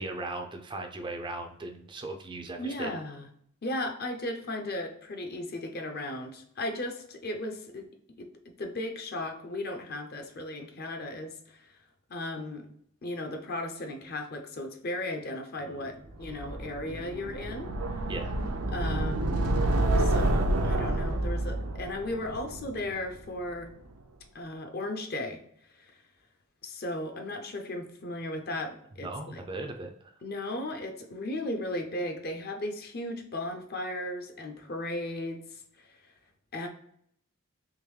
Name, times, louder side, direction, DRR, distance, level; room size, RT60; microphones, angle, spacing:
voice 1, 0.0-2.9 15.6-16.1 18.1-18.4 29.0-30.1, right 2 dB, 20° right, 4 dB, 0.4 m, -38 dB
voice 2, 2.6-3.3 3.6-7.9 8.2-8.3 8.6-11.6 12.1-12.7 13.0-17.7 18.7-19.5 19.9-23.7 24.3-25.4 25.8-26.0 26.6-29.4 30.2-35.9 36.5-36.7, left 1 dB, 45° left, 5 dB, 0.6 m, -36 dB
sound 1, 16.2-23.3, right 1 dB, 80° right, 0.5 m, -29 dB
3.7 x 3.0 x 3.1 m, 0.68 s
head